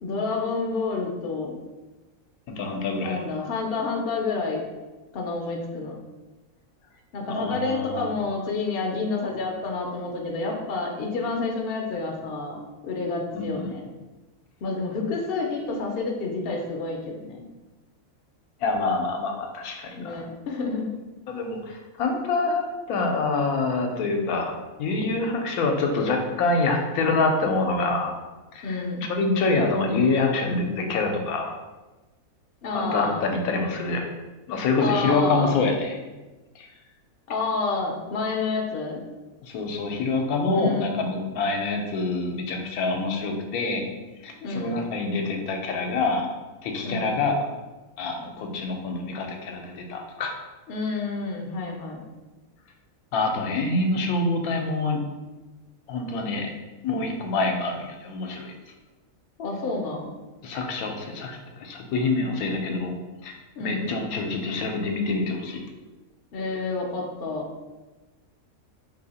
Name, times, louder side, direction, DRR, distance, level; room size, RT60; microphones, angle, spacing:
voice 1, 0.0-1.6 3.0-4.6 5.1-6.0 7.1-13.8 14.6-17.5 20.0-20.9 28.6-29.1 32.6-33.2 34.8-35.6 37.3-39.0 40.5-40.9 44.4-44.8 46.8-47.2 50.7-52.0 59.4-60.1 63.6-63.9 66.3-67.5, left 3 dB, 65° left, 0 dB, 0.6 m, -29 dB
voice 2, 2.5-3.2 7.3-8.1 13.3-13.7 18.6-20.2 21.3-24.5 24.8-28.1 28.5-28.8 29.2-31.5 32.7-34.1 34.5-36.0 36.6-36.7 39.5-43.9 44.2-46.3 46.6-47.3 48.0-50.3 53.1-55.0 55.9-56.5 56.8-58.5 60.4-62.9 63.2-63.3 63.6-65.6, left 3 dB, 90° left, 3 dB, 1.1 m, -26 dB
2.7 x 2.7 x 4.0 m, 1.2 s
omnidirectional pair, 1.5 m